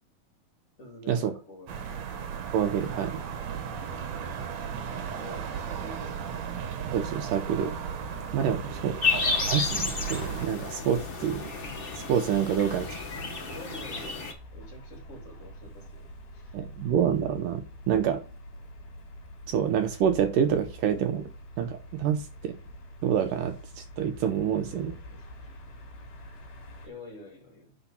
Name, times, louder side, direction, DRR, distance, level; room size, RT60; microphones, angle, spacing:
voice 1, 0.8-2.0 3.7-4.3 5.2-6.3 8.4-8.9 13.4-14.2 14.5-16.6 24.5-25.3 26.8-27.8, left 1 dB, 40° left, -1 dB, 4.1 m, -47 dB
sound 1, 1.7-10.5, right 7 dB, 60° right, 2.1 m, -35 dB
voice 2, 2.5-3.2 6.9-7.7 8.3-11.5 12.1-13.0 16.5-18.2 19.5-21.3 21.6-22.6 23.0-24.9, right 8 dB, 75° right, 7 dB, 2.2 m, -27 dB
sound 2, 7.7-26.9, left 1 dB, 85° left, 4.4 m, -45 dB
sound 3, 9.0-14.3, left 4 dB, 65° left, 0.5 m, -31 dB
10.0 x 4.5 x 5.7 m, 0.36 s
omnidirectional pair, 4.2 m